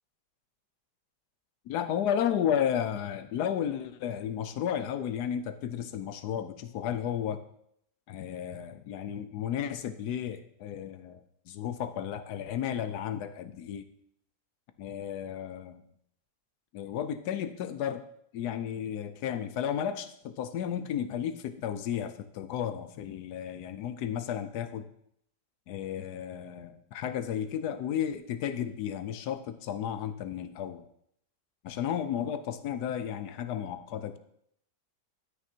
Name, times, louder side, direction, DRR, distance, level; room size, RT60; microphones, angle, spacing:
voice 1, 1.7-7.4 8.1-11.2 11.5-13.9 14.8-15.8 16.7-18.0 18.3-24.9 25.7-30.9 31.6-34.2, left 9 dB, 75° left, 11 dB, 1.1 m, -33 dB
13.0 x 6.2 x 2.8 m, 0.72 s
omnidirectional pair, 1.8 m